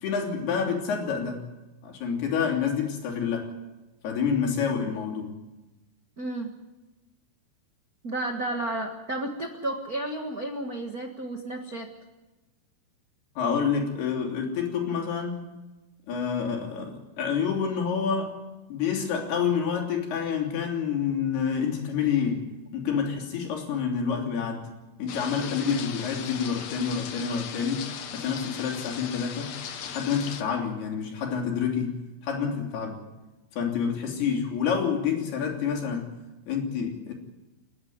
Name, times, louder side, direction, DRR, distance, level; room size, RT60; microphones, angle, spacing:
voice 1, 0.0-1.4 1.8-3.5 4.0-5.3 13.4-15.5 16.1-18.4 18.7-24.7 25.0-27.8 28.1-29.5 29.9-31.9 32.2-33.0 33.5-36.1 36.5-37.1, left 6 dB, 80° left, 1 dB, 5.1 m, -28 dB
voice 2, 6.2-6.5 8.0-11.9, right 1 dB, 85° right, 3 dB, 0.8 m, -32 dB
sound 1, 25.1-30.4, left 8 dB, 65° left, 1.8 m, -38 dB
30.0 x 11.0 x 9.4 m, 1.1 s
omnidirectional pair, 4.5 m